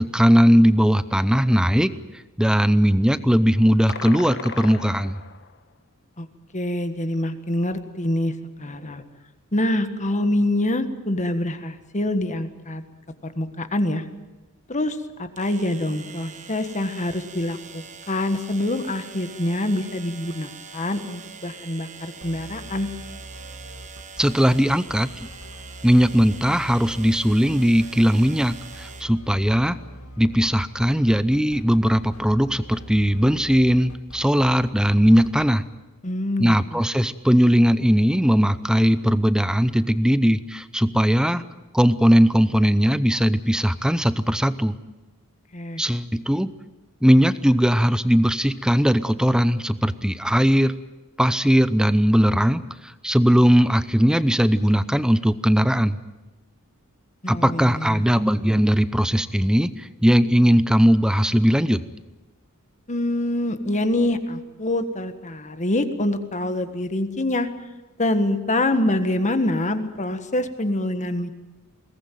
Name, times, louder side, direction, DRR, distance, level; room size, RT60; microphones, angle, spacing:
voice 1, 0.0-1.9 2.4-5.2 24.2-25.3 25.8-29.8 30.2-35.6 36.4-41.4 41.7-44.8 45.8-46.5 47.0-50.7 51.2-56.0 57.3-61.8, equal, 5° right, 14 dB, 0.7 m, -19 dB
sound 1, 3.9-5.6, left 5 dB, 50° left, 1.5 m, -36 dB
voice 2, 6.5-8.3 8.6-9.0 9.5-12.8 13.2-14.0 14.7-22.9 36.0-36.6 45.5-45.8 57.2-58.0 62.9-67.5 68.0-71.3, left 1 dB, 35° left, 9 dB, 1.6 m, -25 dB
sound 2, 13.3-13.4 15.4-29.0, right 6 dB, 35° right, 1.3 m, -43 dB
sound 3, 22.2-35.4, equal, 70° left, 2.6 m, -42 dB
22.0 x 18.5 x 9.2 m, 1.1 s
head